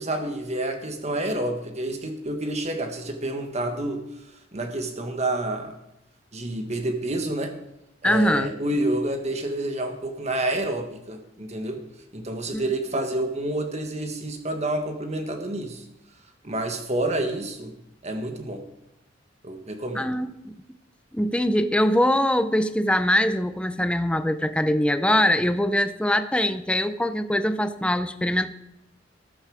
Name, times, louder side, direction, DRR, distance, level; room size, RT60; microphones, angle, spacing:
voice 1, 0.0-4.0 4.5-5.7 6.3-7.5 8.0-11.8 12.1-15.8 16.4-17.7 18.0-18.6 19.4-20.1, right 1 dB, 35° right, 5 dB, 1.6 m, -28 dB
voice 2, 8.0-8.5 12.5-12.6 19.9-20.5 21.1-28.5, left 1 dB, 5° left, 10 dB, 0.6 m, -22 dB
13.5 x 13.5 x 4.9 m, 0.85 s
head